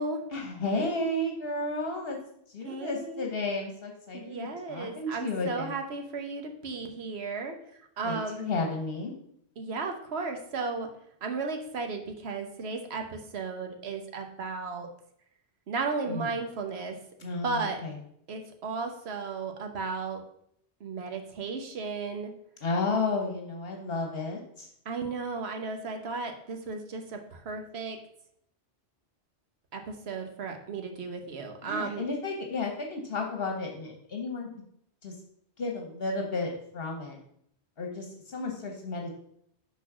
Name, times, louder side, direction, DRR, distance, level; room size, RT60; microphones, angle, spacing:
voice 1, 0.3-2.2 2.5-5.7 8.0-9.1 16.1-16.3 17.2-17.9 22.6-24.7 31.7-34.5 35.0-35.1 35.6-37.2 37.8-39.1, left 3 dB, 65° left, 2 dB, 1.2 m, -32 dB
voice 2, 2.6-3.3 4.1-8.5 9.6-10.9 11.2-14.9 15.7-17.8 18.3-20.2 20.8-22.3 24.8-28.0 29.7-32.0, right 4 dB, 75° right, 5 dB, 1.2 m, -35 dB
6.1 x 3.9 x 6.0 m, 0.70 s
omnidirectional pair, 1.1 m